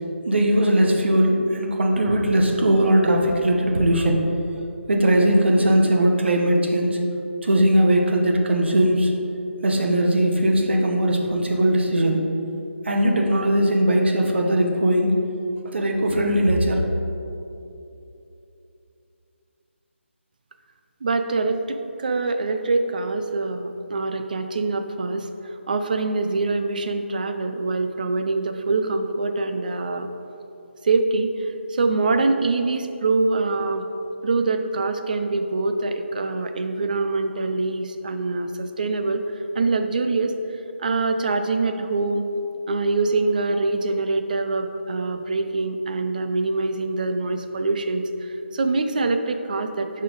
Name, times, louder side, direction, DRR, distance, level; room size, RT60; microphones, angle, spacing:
voice 1, 0.3-4.2 4.9-7.0 7.4-9.1 9.6-12.2 12.8-15.2 15.7-16.8, right 1 dB, 60° right, 1 dB, 1.2 m, -19 dB
voice 2, 21.0-25.3 25.7-30.1 30.8-33.9 34.2-39.2 39.5-40.4 40.8-42.3 42.7-50.0, right 3 dB, 40° right, 7 dB, 0.5 m, -24 dB
11.0 x 4.3 x 3.9 m, 2.8 s
figure-of-eight pair, 155°, 7 cm